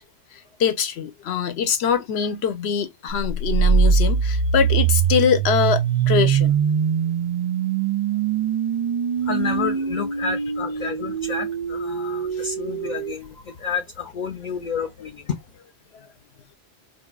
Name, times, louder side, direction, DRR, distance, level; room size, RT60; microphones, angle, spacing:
voice 1, 0.3-6.5 12.4-12.5 15.9-16.1, left 7 dB, 75° left, 1.0 m, -23 dB
sound 1, 3.2-13.1, right 7 dB, 60° right, 0.4 m, -22 dB
voice 2, 9.2-15.5, left 6 dB, 50° left, 0.7 m, -30 dB
4.0 x 2.5 x 2.3 m
omnidirectional pair, 1.1 m